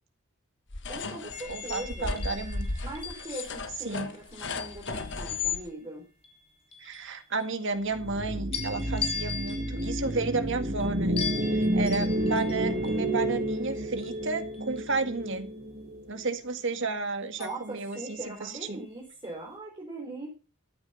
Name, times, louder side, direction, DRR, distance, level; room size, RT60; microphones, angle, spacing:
sound 1, 0.7-5.6, left 4 dB, 55° left, 1.5 m, -35 dB
voice 1, 0.9-2.2 2.8-6.0 17.4-20.3, right 2 dB, 20° right, -1 dB, 4.3 m, -40 dB
sound 2, 1.3-5.7 6.2-8.1 8.5-15.5 17.4-18.8 19.2-19.5, left 6 dB, 30° left, 3.1 m, -41 dB
voice 2, 1.5-2.7 3.9-4.1 6.8-15.5 16.1-18.8, right 3 dB, 60° right, 8 dB, 1.9 m, -32 dB
sound 3, 7.9-16.3, right 1 dB, 40° right, 2.4 m, -30 dB
14.0 x 9.1 x 5.7 m, 0.32 s
head